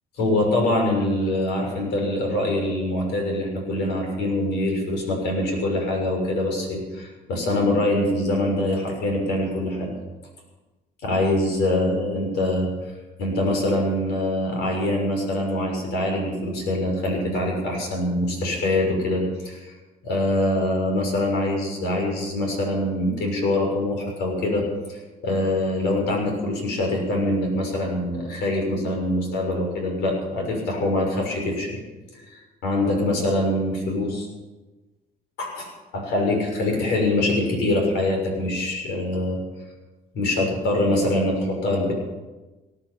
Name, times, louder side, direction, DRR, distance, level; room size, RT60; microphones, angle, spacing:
voice 1, 0.2-9.9 11.0-12.7 13.2-19.7 20.0-31.8 32.1-34.3 35.4-39.4 40.1-41.9, left 1 dB, 85° left, 1 dB, 6.5 m, -24 dB
19.0 x 11.5 x 5.8 m, 1.2 s
cardioid pair, 110°, 17 cm